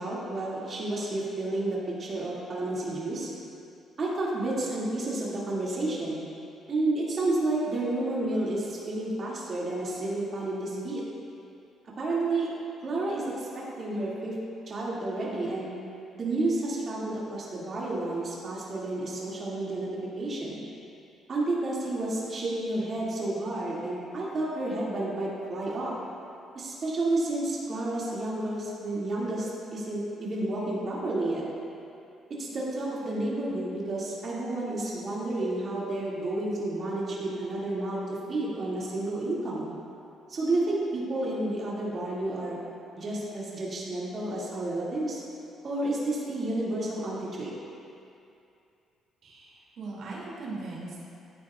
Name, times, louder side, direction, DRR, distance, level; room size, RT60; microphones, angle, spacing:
voice 1, 0.0-3.3 4.0-6.2 6.7-11.0 12.0-12.5 12.8-14.4 14.7-15.7 16.1-19.9 20.2-20.6 21.3-25.9 26.5-31.4 32.4-38.0 38.3-39.7 40.3-42.6 43.0-45.2 45.6-47.5, right 2 dB, 35° right, -6 dB, 2.3 m, -30 dB
voice 2, 49.2-51.0, right 3 dB, 55° right, -6 dB, 2.4 m, -39 dB
15.0 x 9.1 x 2.4 m, 2.6 s
cardioid pair, 145°, 0 cm